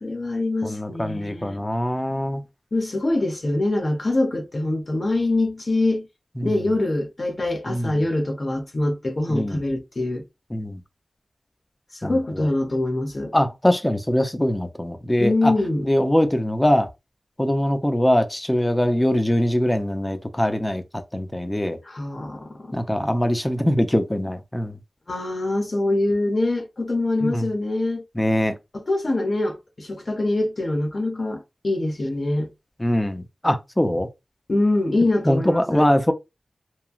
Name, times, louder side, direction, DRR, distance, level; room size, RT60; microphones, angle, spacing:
voice 1, 0.0-1.6 2.7-6.1 6.4-10.2 11.9-13.3 15.2-15.9 21.8-22.7 25.1-28.0 28.7-32.5 34.5-35.9, left 2 dB, 50° left, 0.8 m, -24 dB
voice 2, 0.6-2.4 6.4-6.7 7.7-8.0 9.3-9.6 10.5-10.8 12.0-12.5 13.3-15.5 15.8-16.9 17.4-21.8 22.7-24.7 27.2-27.5 28.2-28.6 32.8-34.1 35.3-36.1, left 1 dB, 15° left, 0.5 m, -22 dB
3.1 x 2.3 x 2.3 m
wide cardioid pair, 60°, 0 cm